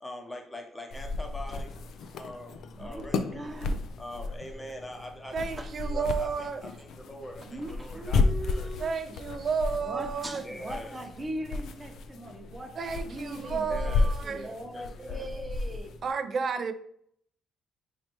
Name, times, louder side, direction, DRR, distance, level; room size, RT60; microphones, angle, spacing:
voice 1, 0.0-1.7 2.2-2.5 2.8-3.4 4.0-6.5 6.8-7.3 7.8-8.7 10.4-10.9 13.7-15.3, left 1 dB, 15° left, 0.8 m, -42 dB
sound 1, 0.9-16.1, left 3 dB, 75° left, 0.3 m, -33 dB
voice 2, 2.8-3.8 5.6-5.7 7.4-8.9 9.7-15.9, right 1 dB, 25° right, 0.8 m, -40 dB
voice 3, 5.3-6.6 8.8-10.4 12.8-14.5 16.0-16.7, right 5 dB, 50° right, 0.4 m, -31 dB
4.0 x 3.2 x 3.0 m
cardioid pair, 90°, 0 cm